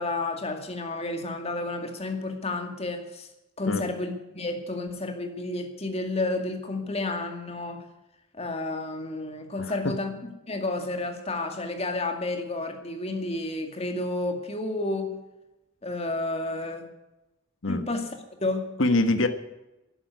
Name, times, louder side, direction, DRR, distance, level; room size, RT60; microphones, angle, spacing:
voice 1, 0.0-3.3 3.6-7.8 8.3-15.2 15.8-16.9 17.7-18.7, left 2 dB, 30° left, 5 dB, 2.3 m, -31 dB
voice 2, 9.6-9.9 17.6-17.8 18.8-19.3, left 2 dB, 75° left, 9 dB, 1.4 m, -24 dB
12.5 x 11.0 x 9.4 m, 0.97 s
head